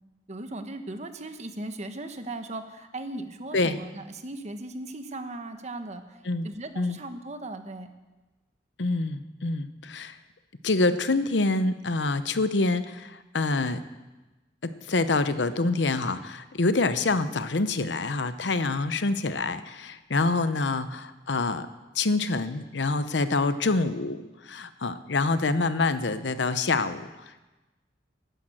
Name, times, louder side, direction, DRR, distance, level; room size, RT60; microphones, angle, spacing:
voice 1, 0.3-7.9, right 2 dB, 40° right, 8 dB, 1.2 m, -38 dB
voice 2, 8.8-10.2 10.6-13.8 14.6-21.7 21.9-27.4, left 3 dB, 80° left, 12 dB, 0.8 m, -26 dB
12.5 x 10.0 x 7.8 m, 1.1 s
head